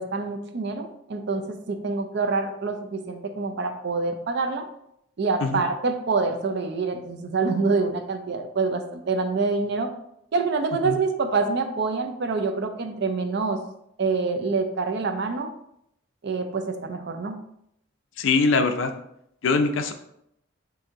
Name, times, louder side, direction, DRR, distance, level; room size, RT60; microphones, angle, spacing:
voice 1, 0.0-4.6 5.2-9.9 10.3-13.6 14.0-15.5 16.2-17.4, right 4 dB, 55° right, 7 dB, 0.5 m, -26 dB
voice 2, 18.2-18.9 19.4-19.9, left 4 dB, 65° left, 7 dB, 0.4 m, -22 dB
4.3 x 2.7 x 3.6 m, 0.76 s
head